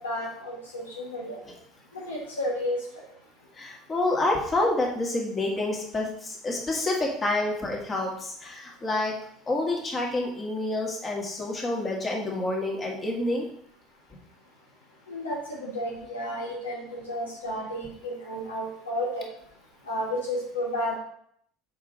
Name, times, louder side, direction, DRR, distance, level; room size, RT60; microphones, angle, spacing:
voice 1, 0.0-1.4 2.1-2.8 15.1-19.3 19.9-21.0, left 1 dB, 80° left, -2 dB, 1.2 m, -32 dB
voice 2, 3.5-9.1 9.5-13.5, left 2 dB, 30° left, -1 dB, 1.9 m, -28 dB
7.0 x 4.9 x 4.0 m, 0.66 s
figure-of-eight pair, 65°, 0 cm